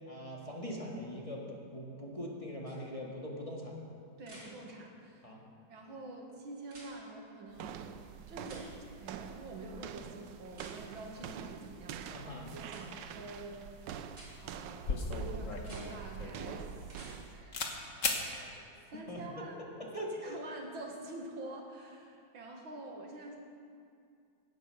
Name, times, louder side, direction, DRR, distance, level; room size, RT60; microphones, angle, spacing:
voice 1, 0.1-3.8 4.4-4.5 5.2-5.4 12.1-12.5 18.9-19.2 19.9-20.4, equal, 20° left, -3 dB, 1.8 m, -42 dB
sound 1, 2.7-2.8 4.2-4.5 6.6-6.9 8.4-8.7 10.5-10.7 12.7-12.8 14.1-14.3 15.5-15.8 16.8-17.1 19.2-19.3, right 1 dB, 50° right, 4.4 m, -52 dB
voice 2, 4.2-5.4 5.7-7.8 8.3-8.7 9.0-14.0 14.4-15.0 15.2-19.6 20.2-23.4, right 2 dB, 90° right, 1 dB, 2.5 m, -47 dB
sound 2, 7.5-17.4, right 8 dB, 75° right, 1.3 m, -46 dB
sound 3, 14.1-14.3 14.5-17.2 17.5-17.7 18.0-18.2, left 3 dB, 45° left, 1.5 m, -36 dB
17.0 x 9.4 x 6.5 m, 2.4 s
omnidirectional pair, 2.1 m